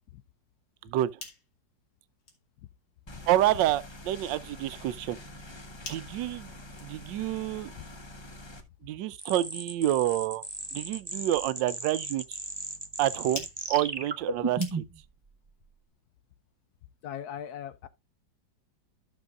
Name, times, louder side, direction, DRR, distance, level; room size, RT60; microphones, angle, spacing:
sound 1, 0.8-15.2, left 4 dB, 85° left, 2.6 m, -51 dB
voice 1, 0.8-1.2 3.3-5.2 5.9-6.5 6.8-7.7 8.8-10.4 10.7-12.4 13.0-14.8, right 13 dB, 75° right, 1.3 m, -28 dB
sound 2, 3.1-8.6, left 1 dB, 25° left, 0.6 m, -46 dB
sound 3, 9.2-15.0, right 3 dB, 25° right, 0.5 m, -36 dB
voice 2, 17.0-17.9, left 9 dB, 65° left, 1.1 m, -39 dB
13.5 x 6.3 x 2.4 m
omnidirectional pair, 2.0 m